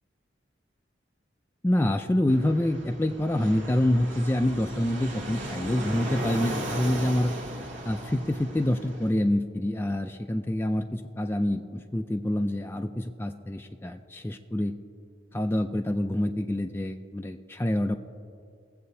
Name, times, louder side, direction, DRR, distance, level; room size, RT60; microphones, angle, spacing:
voice 1, 1.6-7.3 7.8-14.7 15.3-18.0, left 1 dB, 10° left, 5 dB, 0.3 m, -27 dB
Fixed-wing aircraft airplane, 2.3-9.1, right 1 dB, 75° right, 1.3 m, -36 dB
22.0 x 7.7 x 2.7 m, 2.4 s
head